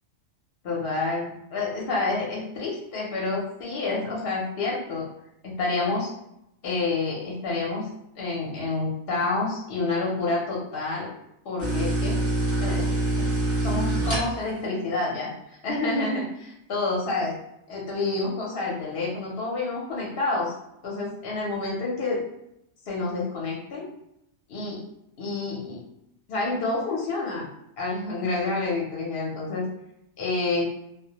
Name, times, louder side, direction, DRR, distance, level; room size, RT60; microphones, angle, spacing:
voice 1, 0.6-5.1 5.4-6.1 6.6-7.9 8.2-11.1 11.4-12.2 12.6-13.3 13.6-17.4 17.7-20.5 20.8-22.2 22.8-23.8 24.5-24.8 25.2-25.8 26.3-27.5 27.8-29.7 30.2-30.6, left 3 dB, 55° left, -3 dB, 0.7 m, -28 dB
sound 1, 11.6-14.6, right 1 dB, 15° right, 0.8 m, -25 dB
2.2 x 2.1 x 2.8 m, 0.81 s
omnidirectional pair, 1.4 m